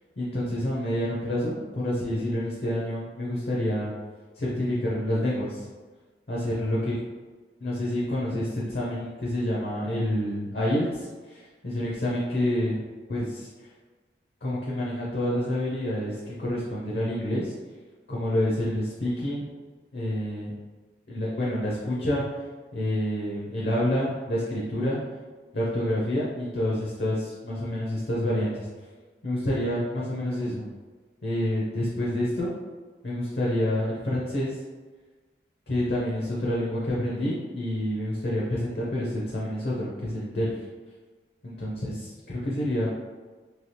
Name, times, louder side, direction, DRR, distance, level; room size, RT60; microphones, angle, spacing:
voice 1, 0.2-3.9 4.3-5.7 6.3-7.0 7.6-13.7 14.4-17.5 18.1-19.5 19.9-20.6 21.1-22.5 22.7-25.0 25.5-28.7 29.2-30.7 31.2-32.5 33.0-34.6 35.7-40.7 41.4-42.9, left 1 dB, 60° left, -5 dB, 0.6 m, -28 dB
3.2 x 2.8 x 2.8 m, 1.4 s
head